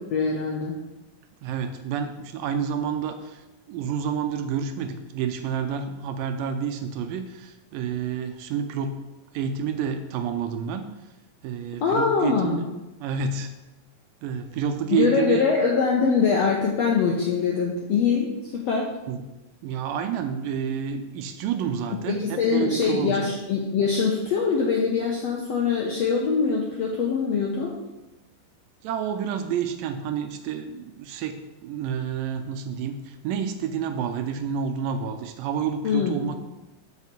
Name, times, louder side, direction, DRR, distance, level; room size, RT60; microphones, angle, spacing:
voice 1, 0.1-0.8 11.8-12.6 14.9-18.9 22.1-27.7 35.8-36.2, left 5 dB, 75° left, -2 dB, 1.5 m, -23 dB
voice 2, 1.4-9.0 9.3-10.9 11.4-12.6 13.0-13.5 14.2-15.4 19.1-19.3 19.6-23.3 28.8-36.4, right 7 dB, 80° right, 7 dB, 2.2 m, -29 dB
6.3 x 5.6 x 6.9 m, 1.0 s
omnidirectional pair, 4.2 m